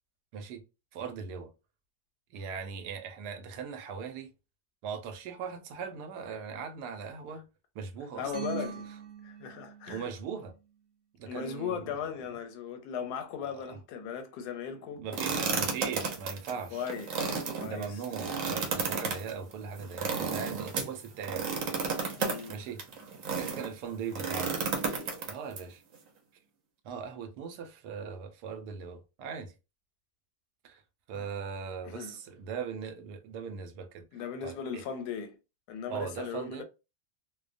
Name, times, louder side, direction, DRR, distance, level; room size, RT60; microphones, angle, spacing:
voice 1, 0.3-0.6 0.9-1.5 2.3-4.3 4.8-7.4 7.7-8.5 9.9-10.5 11.2-12.1 13.4-13.8 15.0-16.8 17.6-21.5 22.5-22.8 23.3-24.6 25.3-25.8 26.8-29.5 30.6-30.8 31.1-34.1 34.4-34.8 35.9-36.6, right 6 dB, 90° right, 1.1 m, -39 dB
voice 2, 8.2-8.9 9.2-10.1 11.3-15.1 16.7-18.0 22.2-22.6 31.1-31.3 31.8-32.2 34.1-35.4 35.7-36.6, left 7 dB, 90° left, 1.1 m, -38 dB
sound 1, 8.2-9.9, right 7 dB, 35° right, 0.6 m, -40 dB
sound 2, 15.1-23.7 24.1-25.6, right 5 dB, 65° right, 0.9 m, -33 dB
2.6 x 2.1 x 2.4 m
omnidirectional pair, 1.7 m